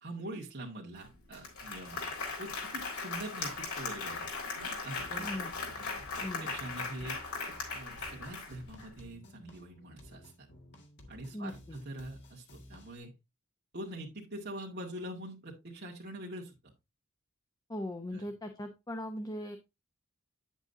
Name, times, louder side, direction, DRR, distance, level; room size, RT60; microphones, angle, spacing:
voice 1, 0.0-4.3 4.8-5.3 5.7-5.9 6.2-7.2 7.7-10.5 11.1-13.1 13.7-16.7 18.1-18.2, right 1 dB, 50° right, -2 dB, 1.9 m, -44 dB
Applause, 1.0-1.1 1.3-8.9, left 4 dB, 90° left, 4.0 m, -38 dB
sound 1, 5.0-13.0, left 1 dB, 55° left, 1.9 m, -55 dB
voice 2, 5.2-5.5 6.2-6.5 11.3-11.8 17.7-19.6, left 1 dB, 20° left, 6 dB, 0.8 m, -39 dB
9.3 x 7.4 x 2.6 m, 0.23 s
head